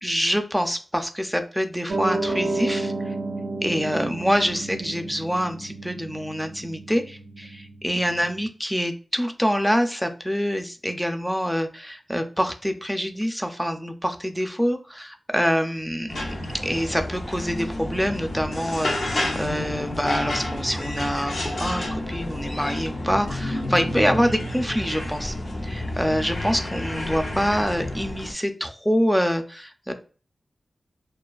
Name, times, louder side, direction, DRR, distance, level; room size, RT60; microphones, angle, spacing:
voice 1, 0.0-3.1 3.6-16.3 16.6-25.4 25.6-29.9, equal, ahead, 6 dB, 0.3 m, -26 dB
Piano, 1.9-8.4, right 2 dB, 85° right, 0.4 m, -31 dB
sound 1, 16.1-28.3, left 1 dB, 80° left, 0.6 m, -30 dB
2.4 x 2.2 x 2.3 m, 0.37 s
wide cardioid pair, 100°, 0 cm